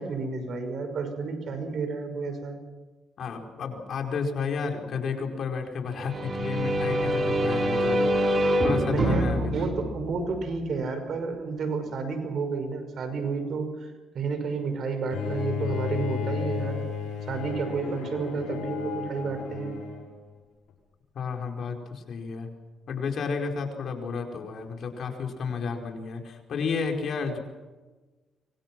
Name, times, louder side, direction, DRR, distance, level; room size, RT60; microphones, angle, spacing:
voice 1, 0.0-2.6 8.9-13.9 14.1-16.8 17.3-19.7, right 4 dB, 60° right, 7 dB, 5.6 m, -31 dB
voice 2, 3.2-8.1 8.6-9.7 21.1-22.5 22.9-27.4, left 5 dB, 60° left, 3 dB, 4.7 m, -31 dB
sound 1, 5.9-10.7, right 1 dB, 40° right, 3.8 m, -26 dB
Bowed string instrument, 15.1-20.1, left 7 dB, 85° left, 6.7 m, -33 dB
25.5 x 24.5 x 6.2 m, 1.2 s
cardioid pair, 90°, 0 cm